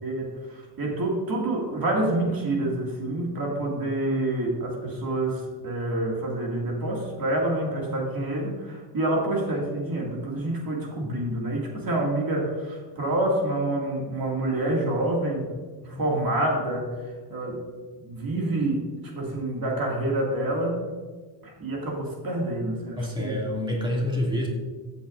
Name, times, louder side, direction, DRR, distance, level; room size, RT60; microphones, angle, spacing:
voice 1, 0.0-15.5 15.8-16.9 17.3-17.6 18.0-18.9 19.1-20.8 21.4-23.4, right 1 dB, 50° right, -1 dB, 2.2 m, -27 dB
voice 2, 23.0-24.5, left 1 dB, 10° right, -2 dB, 2.4 m, -28 dB
14.5 x 8.1 x 2.5 m, 1.4 s
cardioid pair, 95°, 46 cm